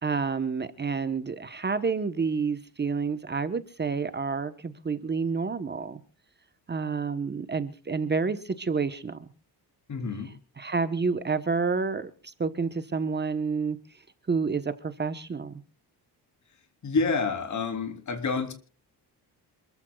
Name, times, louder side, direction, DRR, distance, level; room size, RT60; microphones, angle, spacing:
voice 1, 0.0-6.0 6.7-9.3 10.6-13.8 14.3-15.5, right 5 dB, 25° right, 1.1 m, -29 dB
voice 2, 9.9-10.3 16.8-18.5, left 4 dB, 45° left, 3.4 m, -28 dB
27.5 x 14.5 x 2.4 m
cardioid pair, 130°, 39 cm